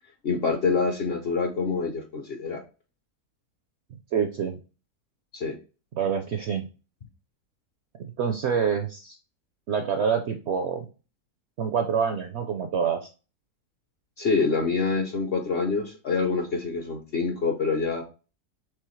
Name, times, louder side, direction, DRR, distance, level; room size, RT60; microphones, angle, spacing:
voice 1, 0.2-2.6 5.3-5.6 14.2-18.0, left 4 dB, 55° left, 4 dB, 0.7 m, -26 dB
voice 2, 4.1-4.6 6.0-6.7 8.0-9.2 9.7-10.9 11.6-13.1, right 7 dB, 70° right, 5 dB, 0.6 m, -26 dB
4.8 x 3.4 x 3.0 m, 0.34 s
omnidirectional pair, 1.6 m